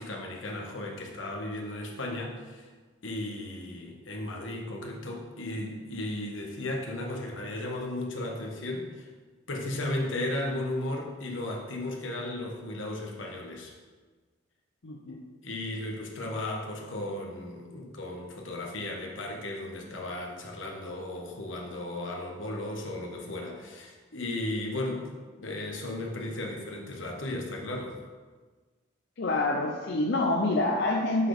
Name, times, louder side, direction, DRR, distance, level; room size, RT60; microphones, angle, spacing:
voice 1, 0.0-2.7 3.0-9.1 9.5-13.7 15.1-25.1 25.4-28.0, left 1 dB, 85° left, 0 dB, 1.3 m, -35 dB
voice 2, 14.8-15.2 29.2-31.3, left 2 dB, 60° left, -1 dB, 0.6 m, -27 dB
7.5 x 4.0 x 5.0 m, 1.4 s
head